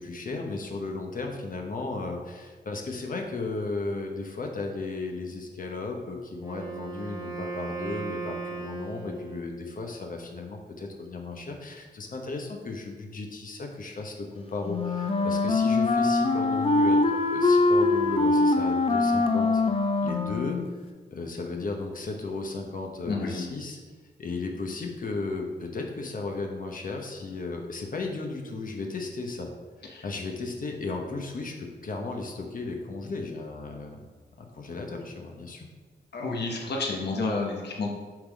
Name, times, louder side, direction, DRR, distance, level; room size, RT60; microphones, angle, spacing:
voice 1, 0.0-19.6 20.0-20.6 21.1-23.8 24.2-29.5 29.8-34.0 34.4-35.7, left 3 dB, 50° left, 2 dB, 1.0 m, -35 dB
Wind instrument woodwind instrument, 6.4-9.7, right 4 dB, 20° right, 1.5 m, -37 dB
Wind instrument woodwind instrument 2, 14.6-20.7, left 3 dB, 30° left, 0.6 m, -23 dB
voice 2, 23.0-23.5 29.9-30.0 36.1-37.9, left 3 dB, 70° left, 0 dB, 1.2 m, -30 dB
7.7 x 3.9 x 5.1 m, 1.4 s
wide cardioid pair, 130°, 18 cm